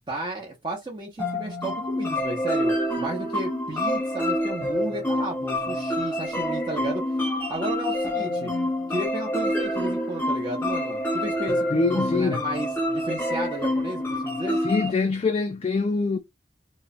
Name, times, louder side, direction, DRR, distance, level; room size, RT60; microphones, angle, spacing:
voice 1, 0.1-7.0 7.5-8.5 8.9-14.6, right 1 dB, 25° right, 0.7 m, -33 dB
sound 1, 1.2-14.9, left 1 dB, 10° left, 0.8 m, -27 dB
voice 2, 11.7-12.4 14.6-16.2, left 3 dB, 35° left, 0.3 m, -24 dB
3.0 x 2.1 x 2.4 m
head